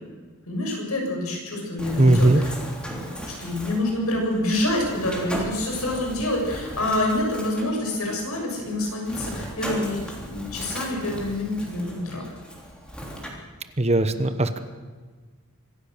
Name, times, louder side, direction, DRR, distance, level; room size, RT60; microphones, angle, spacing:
voice 1, 0.5-2.6 3.4-12.2, left 1 dB, 75° left, 0 dB, 7.3 m, -27 dB
Bird, 1.8-13.3, equal, 5° left, 3.3 m, -37 dB
voice 2, 2.0-2.5 13.8-14.6, right 2 dB, 30° right, 10 dB, 1.0 m, -19 dB
25.0 x 15.5 x 6.8 m, 1.4 s
head